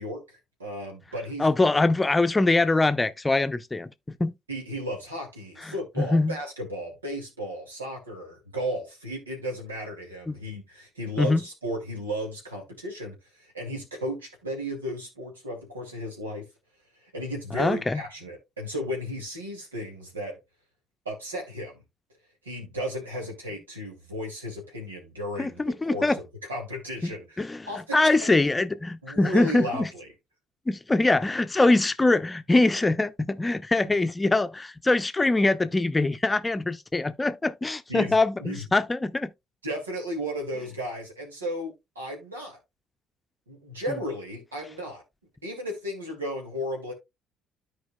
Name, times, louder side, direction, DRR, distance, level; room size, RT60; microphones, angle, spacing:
voice 1, 0.0-1.5 4.5-16.5 17.0-20.4 21.0-21.8 22.4-25.6 25.9-26.2 26.5-28.5 29.0-30.1 37.9-38.6 39.6-42.6 43.5-45.0 45.4-46.9, equal, 90° right, 2.2 m, -34 dB
voice 2, 1.4-3.9 4.2-4.3 6.0-6.3 10.3-10.4 11.2-11.4 17.6-18.0 25.4-26.2 27.0-27.1 27.4-27.7 27.9-29.9 30.7-39.3, left 2 dB, 20° left, 0.7 m, -23 dB
13.5 x 4.7 x 2.2 m
figure-of-eight pair, 50°, 0 cm